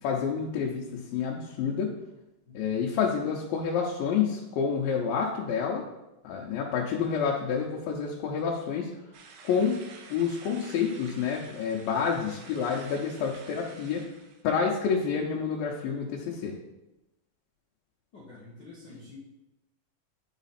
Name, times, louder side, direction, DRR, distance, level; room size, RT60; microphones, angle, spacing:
voice 1, 0.0-1.9 2.5-5.9 6.2-8.9 9.4-9.8 10.1-14.0 14.4-16.5, left 6 dB, 90° left, -1 dB, 2.5 m, -28 dB
sound 1, 9.1-14.4, right 5 dB, 75° right, 2.1 m, -50 dB
voice 2, 18.1-19.2, left 3 dB, 65° left, -7 dB, 1.1 m, -48 dB
9.6 x 4.0 x 4.2 m, 0.96 s
omnidirectional pair, 4.0 m